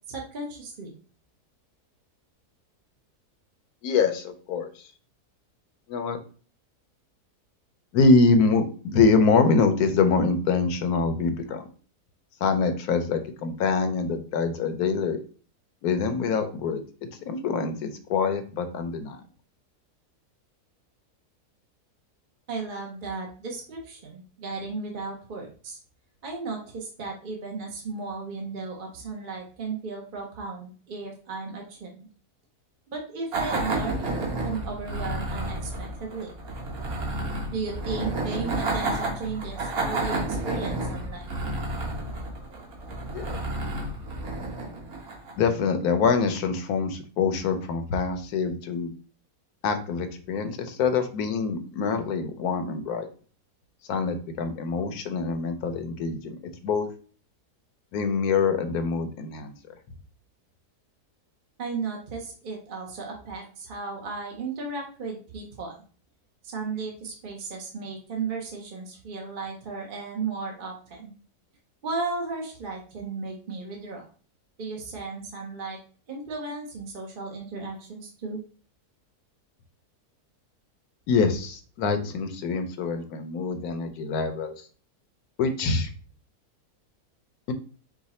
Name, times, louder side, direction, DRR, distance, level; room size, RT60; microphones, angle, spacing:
voice 1, 0.1-0.9 22.5-25.8 26.2-32.1 32.9-36.3 37.5-41.3 61.6-65.8 66.4-71.1 71.8-74.0 74.6-75.8 76.1-78.4, right 4 dB, 45° right, 0 dB, 0.8 m, -35 dB
voice 2, 3.8-4.7 5.9-6.2 7.9-11.6 12.4-15.2 15.8-16.8 17.3-19.2 43.1-43.4 45.4-48.9 49.6-53.1 53.9-56.9 57.9-59.5 81.1-84.5 85.4-85.9 87.5-87.6, left 4 dB, 75° left, 7 dB, 1.1 m, -25 dB
sound 1, 33.3-45.5, right 2 dB, 70° right, 1.5 m, -31 dB
4.8 x 2.2 x 4.1 m, 0.41 s
omnidirectional pair, 1.7 m